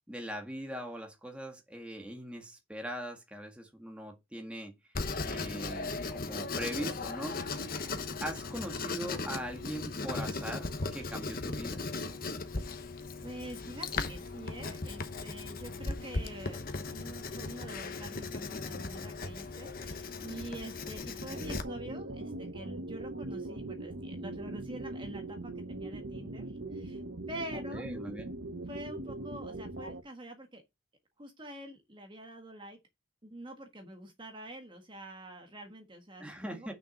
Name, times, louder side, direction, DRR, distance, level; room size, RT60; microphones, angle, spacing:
voice 1, 0.1-4.7 5.2-7.7 8.2-11.8 27.5-28.3 36.2-36.7, equal, 5° right, 1.7 m, -41 dB
Writing, 4.9-21.6, left 3 dB, 45° left, 1.0 m, -37 dB
voice 2, 13.2-16.6 16.9-27.0 27.3-27.9 28.7-30.6 31.2-32.8 33.2-36.7, right 1 dB, 25° right, 1.5 m, -46 dB
sound 1, 21.3-30.0, right 2 dB, 65° right, 1.0 m, -41 dB
6.8 x 6.2 x 5.4 m
head